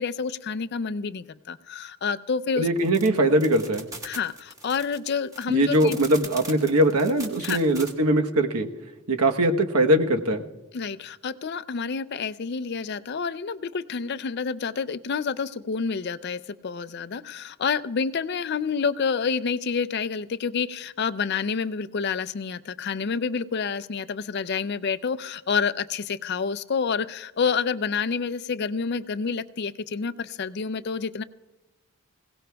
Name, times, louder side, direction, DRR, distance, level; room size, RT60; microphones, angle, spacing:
voice 1, 0.0-2.7 4.0-6.0 7.4-7.6 10.7-31.2, left 5 dB, 45° left, 14 dB, 0.4 m, -28 dB
voice 2, 2.6-3.9 5.5-8.7 9.1-10.4, right 1 dB, 85° right, 5 dB, 1.1 m, -21 dB
sound 1, 2.8-7.9, right 2 dB, 15° right, 1.3 m, -40 dB
26.0 x 17.0 x 2.3 m, 1.1 s
head